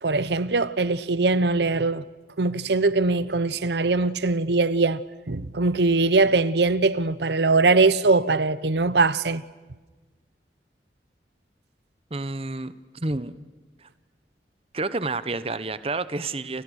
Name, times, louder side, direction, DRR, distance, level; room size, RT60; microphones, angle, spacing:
voice 1, 0.0-2.0 2.4-5.0 5.3-9.4, right 3 dB, 75° right, 0.9 m, -21 dB
voice 2, 12.1-13.3 13.8-13.9 14.7-16.6, right 3 dB, 35° right, 0.9 m, -29 dB
29.0 x 29.0 x 6.4 m
head